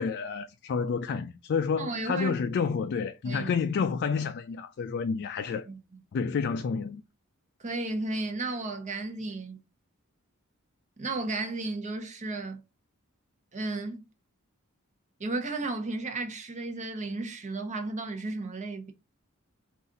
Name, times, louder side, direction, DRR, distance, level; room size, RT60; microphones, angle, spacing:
voice 1, 0.0-5.7 6.1-7.0, left 5 dB, 50° left, 0.3 m, -29 dB
voice 2, 1.8-2.4 3.2-3.5 5.7-5.8 7.6-9.6 11.0-12.6 13.5-14.1 15.2-18.9, right 2 dB, 35° right, 0.9 m, -33 dB
4.0 x 2.5 x 3.9 m
head